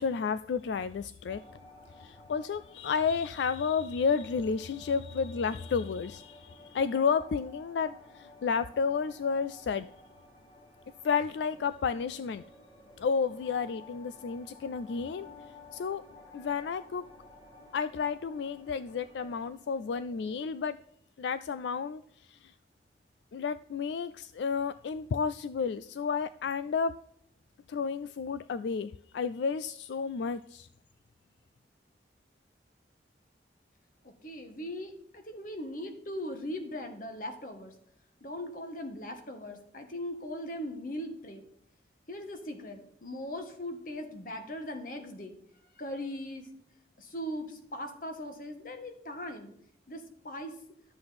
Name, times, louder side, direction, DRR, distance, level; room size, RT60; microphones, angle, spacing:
voice 1, 0.0-1.4 2.0-9.9 11.0-12.4 13.0-15.3 15.7-16.0 16.3-17.0 17.7-20.8 21.2-22.5 23.3-26.9 27.7-30.7, left 5 dB, 80° left, 14 dB, 0.3 m, -31 dB
sound 1, 1.3-20.4, left 3 dB, 20° left, 2.2 m, -54 dB
voice 2, 34.0-37.7 38.2-41.4 42.1-45.4 45.7-46.5 47.0-49.5 49.9-50.6, left 1 dB, 50° left, 5 dB, 1.6 m, -39 dB
12.5 x 7.7 x 4.2 m, 0.69 s
head